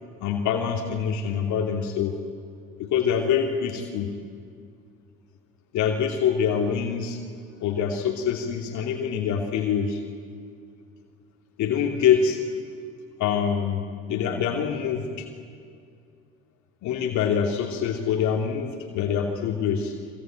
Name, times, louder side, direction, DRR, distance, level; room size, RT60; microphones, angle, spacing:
voice 1, 0.2-2.1 2.8-4.1 5.7-7.2 7.6-10.0 11.6-12.6 13.2-15.3 16.8-19.9, left 7 dB, 70° left, 2 dB, 2.7 m, -25 dB
25.5 x 23.0 x 9.2 m, 2.2 s
supercardioid pair, 80°, 30 cm